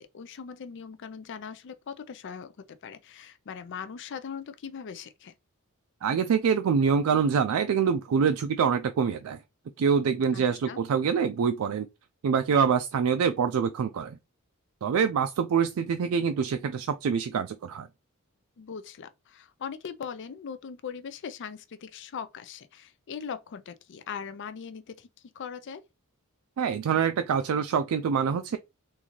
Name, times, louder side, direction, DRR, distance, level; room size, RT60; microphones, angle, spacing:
voice 1, 0.0-5.3 10.3-10.8 18.6-25.1 25.3-25.8, left 6 dB, 55° left, 0.4 m, -40 dB
voice 2, 6.0-9.4 9.8-11.9 12.2-14.2 14.8-17.9 26.6-28.6, right 6 dB, 70° right, 0.3 m, -25 dB
3.8 x 2.6 x 2.9 m
head